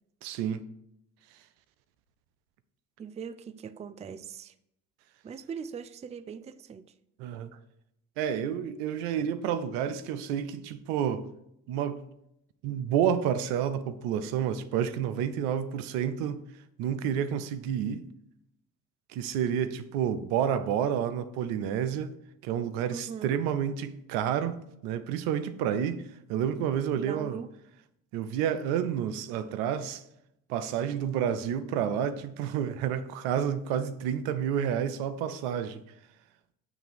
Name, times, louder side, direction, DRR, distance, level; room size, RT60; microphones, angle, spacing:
voice 1, 0.2-0.6 7.2-7.5 8.2-11.3 11.7-12.0 12.6-16.4 16.8-18.1 19.1-22.2 22.4-27.4 28.1-30.0 30.5-35.8, right 9 dB, 85° right, 0.6 m, -30 dB
voice 2, 3.0-4.5 5.2-6.9 22.9-23.4 26.9-27.5, right 7 dB, 20° right, 0.4 m, -40 dB
7.1 x 3.4 x 5.9 m
hypercardioid pair, 60°, 39 cm